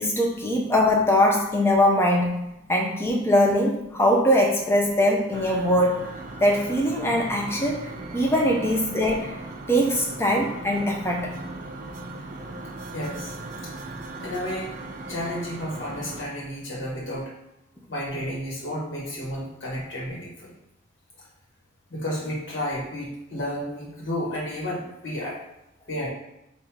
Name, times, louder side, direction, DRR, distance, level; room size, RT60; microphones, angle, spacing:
voice 1, 0.0-2.4 2.7-6.0 6.4-9.4 9.7-11.3, left 1 dB, 15° left, 0 dB, 0.6 m, -22 dB
sound 1, 5.3-16.2, right 2 dB, 40° right, 0.4 m, -38 dB
voice 2, 12.9-13.3 13.6-13.7 14.2-14.7 15.1-17.3 17.9-20.5 21.9-25.4 25.9-26.1, equal, 65° left, -6 dB, 1.4 m, -32 dB
3.6 x 2.6 x 4.6 m, 0.85 s
head